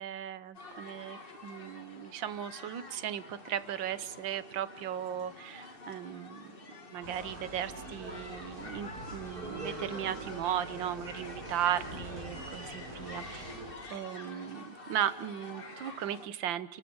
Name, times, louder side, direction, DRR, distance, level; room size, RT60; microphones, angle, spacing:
voice 1, 0.0-6.4 6.9-13.6 13.9-16.8, right 10 dB, 85° right, 14 dB, 1.7 m, -36 dB
sound 1, 0.5-16.3, left 2 dB, 30° left, 2.1 m, -48 dB
sound 2, 7.0-13.7, right 2 dB, 50° right, 4.5 m, -43 dB
29.5 x 14.0 x 8.8 m, 1.1 s
omnidirectional pair, 2.0 m